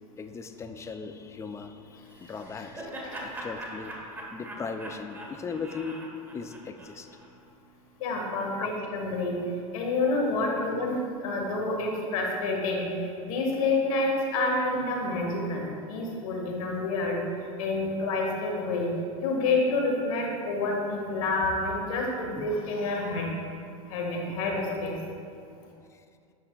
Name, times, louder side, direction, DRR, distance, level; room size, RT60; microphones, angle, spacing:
voice 1, 0.2-2.9 3.2-3.9 4.3-6.0 6.3-7.1 8.6-8.7 10.4-10.5 22.4-22.5 24.3-24.4, left 5 dB, 15° left, 8 dB, 0.4 m, -38 dB
Laughter, 2.1-7.3, right 1 dB, 10° right, 1.1 m, -41 dB
voice 2, 2.8-3.3 8.0-9.4 9.7-12.9 13.2-17.2 17.6-18.9 19.2-23.3 23.9-24.9, left 2 dB, 75° left, 0 dB, 1.4 m, -28 dB
8.5 x 6.0 x 2.3 m, 2.4 s
hypercardioid pair, 105°, 18 cm